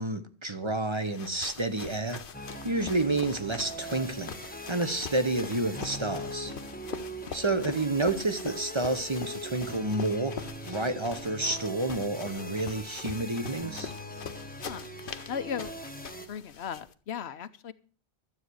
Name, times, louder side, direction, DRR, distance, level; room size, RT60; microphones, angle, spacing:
voice 1, 0.0-2.2 2.6-6.5 7.3-13.9, right 2 dB, 30° right, 0.9 m, -30 dB
sound 1, 0.9-16.9, left 6 dB, 60° left, 1.0 m, -43 dB
sound 2, 2.3-16.3, equal, 10° left, 1.1 m, -41 dB
voice 2, 15.3-15.7 16.3-17.7, left 7 dB, 85° left, 1.1 m, -36 dB
12.5 x 8.2 x 6.3 m
omnidirectional pair, 1.1 m